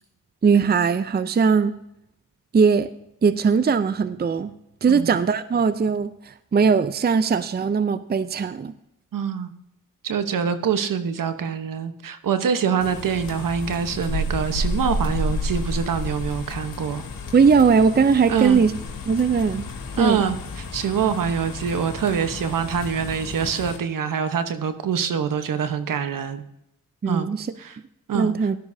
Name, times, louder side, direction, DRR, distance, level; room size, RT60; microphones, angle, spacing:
voice 1, 0.4-1.7 2.5-2.9 3.2-4.5 4.8-8.7 17.3-18.7 19.1-19.7 20.0-20.2 27.0-27.5 28.1-28.6, right 5 dB, 30° right, 13 dB, 0.6 m, -19 dB
voice 2, 9.1-9.5 10.0-17.0 18.3-18.6 20.0-26.4 27.1-27.3 27.6-27.8 28.1-28.3, right 7 dB, 65° right, 9 dB, 1.1 m, -25 dB
sound 1, 12.8-23.8, left 2 dB, 70° left, 2.1 m, -31 dB
17.0 x 12.0 x 2.7 m, 0.82 s
supercardioid pair, 50°, 35 cm